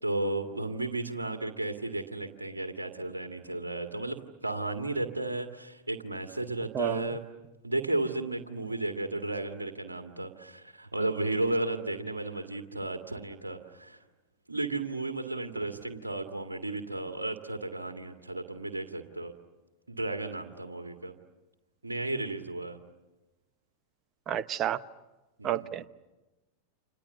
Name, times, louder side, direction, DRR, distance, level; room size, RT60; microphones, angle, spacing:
voice 1, 0.0-7.3 7.6-14.0 14.5-19.3 19.9-21.2 21.8-22.8 25.4-25.7, right 2 dB, 80° right, 6 dB, 1.9 m, -34 dB
voice 2, 24.3-24.8 25.4-25.9, right 11 dB, 30° right, 15 dB, 1.0 m, -30 dB
30.0 x 27.0 x 7.2 m, 1.1 s
figure-of-eight pair, 90°, 0 cm